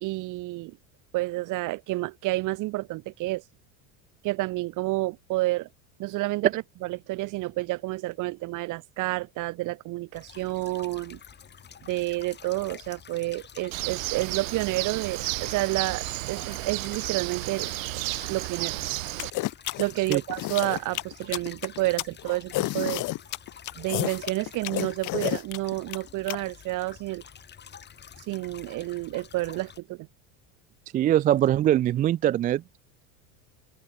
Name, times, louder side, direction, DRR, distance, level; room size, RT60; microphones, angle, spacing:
voice 1, 0.0-0.8 1.1-3.4 4.2-5.7 6.0-6.5 6.8-11.2 11.8-17.7 18.3-18.8 19.8-23.1 23.8-27.2 28.3-30.1, right 20 dB, 50° right, 2.2 m, -30 dB
sound 1, 10.1-29.8, left 8 dB, 25° left, 6.5 m, -48 dB
Bird, 13.7-19.3, right 21 dB, 85° right, 2.4 m, -32 dB
sound 2, 19.2-26.4, left 18 dB, 50° left, 3.0 m, -30 dB
voice 2, 30.9-32.6, right 12 dB, 25° right, 0.4 m, -22 dB
open air
supercardioid pair, 135°, 40 cm